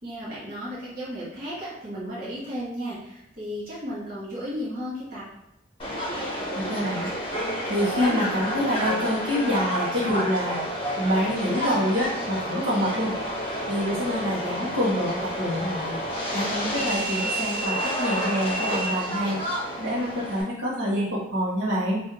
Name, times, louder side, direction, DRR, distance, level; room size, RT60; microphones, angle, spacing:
voice 1, 0.0-5.2, equal, 45° right, -9 dB, 1.2 m, -34 dB
Subway metro underground, 5.8-20.4, equal, 30° left, 1.0 m, -29 dB
voice 2, 6.7-7.1 7.7-10.6 11.0-13.1 13.7-15.9 16.3-19.4 19.8-22.0, equal, 80° right, -12 dB, 1.1 m, -26 dB
2.9 x 2.6 x 3.6 m, 0.83 s
head